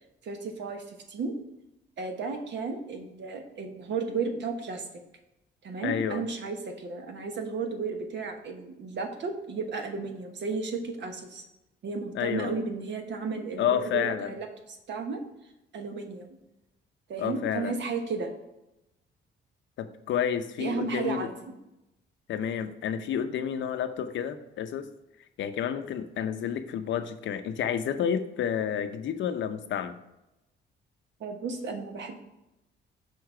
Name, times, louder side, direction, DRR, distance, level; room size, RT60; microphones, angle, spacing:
voice 1, 0.2-1.3 2.0-4.9 5.6-11.4 11.8-15.2 15.7-16.4 17.1-18.3 20.6-21.6 31.2-32.2, right 4 dB, 65° right, 4 dB, 1.2 m, -34 dB
voice 2, 5.8-6.2 12.1-12.6 13.6-14.4 17.2-17.7 19.8-21.3 22.3-24.9 25.4-30.0, left 8 dB, 70° left, 9 dB, 0.7 m, -30 dB
6.5 x 4.2 x 4.7 m, 0.91 s
cardioid pair, 90°, 20 cm